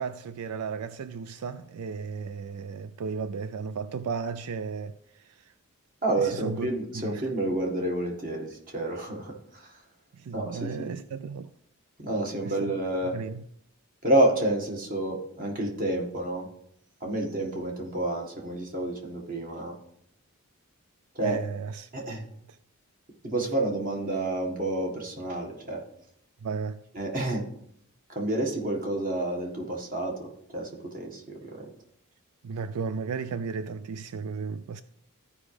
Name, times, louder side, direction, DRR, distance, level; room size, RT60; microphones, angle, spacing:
voice 1, 0.0-5.5 6.2-6.7 6.9-7.2 10.1-11.5 12.4-12.7 13.1-13.4 21.2-21.9 26.4-26.8 32.4-34.8, right 5 dB, 85° right, 0.4 m, -34 dB
voice 2, 6.0-9.8 10.3-10.9 12.0-13.2 14.0-16.5 17.0-19.7 21.1-21.4 21.9-22.2 23.2-25.8 26.9-27.5 28.1-31.7, right 1 dB, 40° right, 1.5 m, -29 dB
14.0 x 4.9 x 3.3 m
head